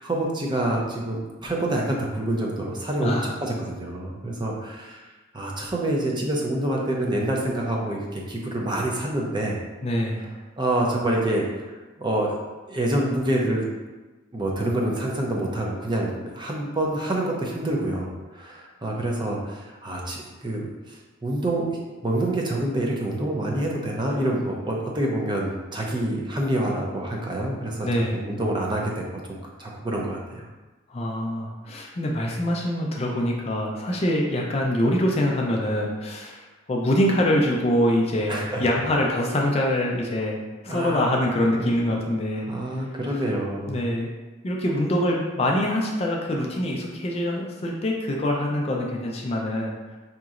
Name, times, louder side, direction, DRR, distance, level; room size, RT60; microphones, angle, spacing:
voice 1, 0.0-5.1 5.3-9.6 10.6-11.7 12.0-12.4 12.7-13.6 14.3-21.6 22.0-30.5 38.3-38.6 40.7-41.9 42.4-43.8, right 1 dB, 25° right, -2 dB, 0.5 m, -27 dB
voice 2, 3.0-3.4 9.8-10.3 27.8-28.2 30.9-40.4 40.6-42.5 43.7-44.1 44.4-49.7, left 1 dB, 30° left, -1 dB, 0.4 m, -24 dB
5.1 x 2.9 x 2.4 m, 1.2 s
head